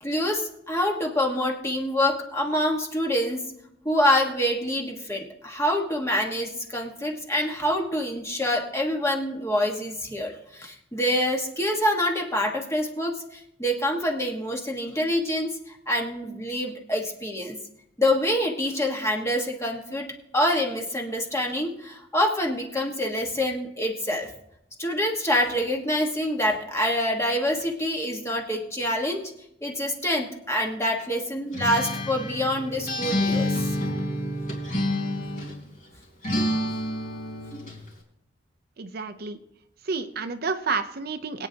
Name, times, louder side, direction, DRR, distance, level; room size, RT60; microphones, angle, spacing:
voice 1, 0.0-3.4 3.8-17.6 18.0-20.1 20.3-24.3 24.8-29.2 29.6-33.7, left 1 dB, 15° left, 1 dB, 1.4 m, -26 dB
Acoustic guitar, 31.5-35.6 36.2-37.8, left 1 dB, 45° left, 3.8 m, -28 dB
voice 2, 38.8-39.4 39.9-41.5, right 4 dB, 55° right, 9 dB, 0.6 m, -30 dB
22.5 x 9.0 x 2.8 m, 0.78 s
head